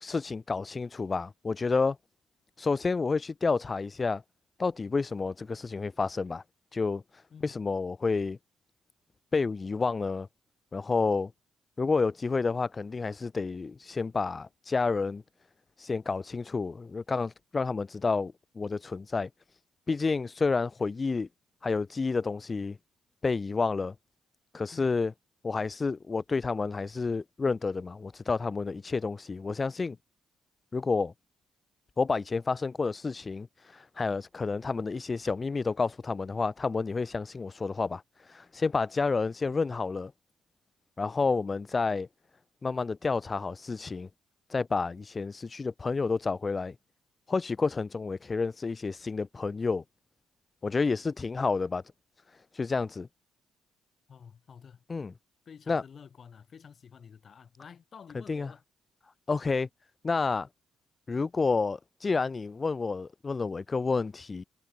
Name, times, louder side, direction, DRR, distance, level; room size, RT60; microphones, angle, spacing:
voice 1, 0.0-2.0 2.6-4.2 4.6-6.4 6.7-8.4 9.3-10.3 10.7-11.3 11.8-15.2 15.8-19.3 19.9-21.3 21.6-22.8 23.2-23.9 24.5-25.1 25.4-30.0 30.7-31.1 32.0-40.1 41.0-42.1 42.6-44.1 44.5-46.7 47.3-49.8 50.6-51.8 52.5-53.1 54.9-55.1 55.7-55.8 58.3-58.5 59.3-59.7 60.0-60.5 61.1-64.4, left 4 dB, 30° left, 0.7 m, -30 dB
voice 2, 54.1-54.8 55.5-58.6, left 7 dB, 50° left, 4.2 m, -50 dB
cardioid pair, 90°, 0 cm